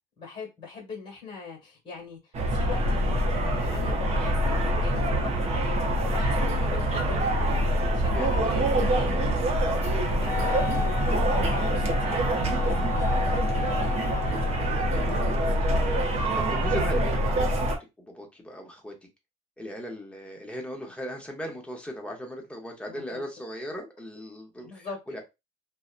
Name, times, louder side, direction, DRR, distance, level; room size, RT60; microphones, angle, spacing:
voice 1, 0.2-9.3 9.8-13.9 22.9-23.2 24.6-25.0, left 5 dB, 30° left, 1.2 m, -41 dB
sound 1, 2.3-17.8, right 1 dB, 40° right, 0.7 m, -25 dB
voice 2, 8.1-8.9 14.2-18.9 19.6-25.2, equal, 5° left, 0.8 m, -39 dB
Wind instrument woodwind instrument, 10.3-15.3, left 7 dB, 60° left, 0.7 m, -35 dB
2.7 x 2.1 x 2.4 m
cardioid pair, 130°, 16 cm